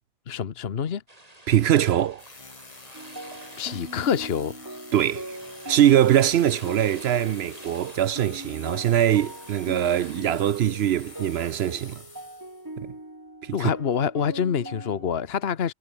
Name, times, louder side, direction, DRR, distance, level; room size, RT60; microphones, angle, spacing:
voice 1, 0.3-1.0 3.6-4.6 13.5-15.7, left 7 dB, 65° left, 1.3 m, -26 dB
sound 1, 1.1-11.5, right 1 dB, 35° right, 5.0 m, -50 dB
voice 2, 1.5-2.2 4.9-5.4 5.7-12.0 12.8-12.9 13.4-13.7, right 11 dB, 70° right, 0.8 m, -22 dB
sound 2, 2.2-12.7, left 3 dB, 30° left, 1.4 m, -47 dB
sound 3, 2.9-15.1, right 1 dB, 15° right, 2.3 m, -41 dB
omnidirectional pair, 1.1 m